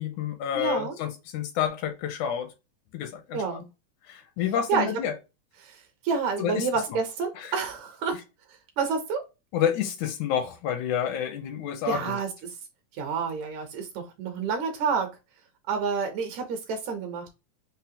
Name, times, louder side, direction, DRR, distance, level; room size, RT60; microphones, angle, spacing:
voice 1, 0.0-2.5 2.9-3.6 4.0-5.1 6.4-6.7 7.4-7.5 9.5-12.2, left 9 dB, 80° left, 2.0 m, -29 dB
voice 2, 0.5-1.0 3.3-3.7 4.7-4.9 5.6-8.2 8.8-9.2 11.9-12.5 12.9-15.1 15.7-17.3, right 5 dB, 75° right, 1.9 m, -29 dB
5.5 x 2.1 x 2.7 m
omnidirectional pair, 3.6 m